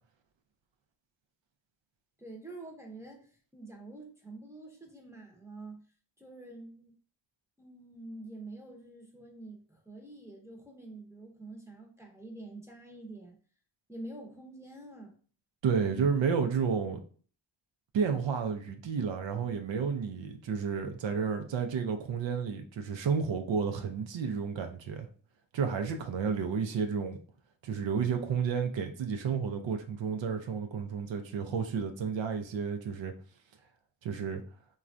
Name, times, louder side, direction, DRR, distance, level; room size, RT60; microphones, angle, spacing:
voice 1, 2.2-5.9 6.2-6.9 7.6-13.4 13.9-15.1, right 2 dB, 5° right, 0.7 m, -47 dB
voice 2, 15.6-17.0 17.9-25.1 25.5-27.2 27.6-33.1 34.0-34.4, right 6 dB, 70° right, 0.6 m, -31 dB
3.1 x 2.3 x 2.5 m
cardioid pair, 65°, 46 cm